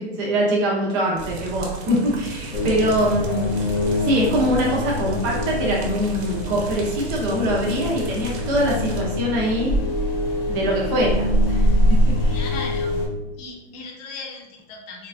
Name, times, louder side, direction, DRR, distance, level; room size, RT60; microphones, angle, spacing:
voice 1, 0.0-3.5 4.0-9.7 10.5-11.8 12.2-12.6, right 1 dB, 20° right, -3 dB, 0.4 m, -23 dB
sound 1, 1.2-9.0, right 3 dB, 75° right, 0.7 m, -36 dB
sound 2, 2.5-13.1, left 1 dB, 60° left, 0.8 m, -24 dB
voice 2, 12.3-13.0 13.4-15.1, left 4 dB, 35° left, 0 dB, 0.5 m, -36 dB
3.1 x 2.2 x 2.4 m, 0.94 s
supercardioid pair, 160°, 34 cm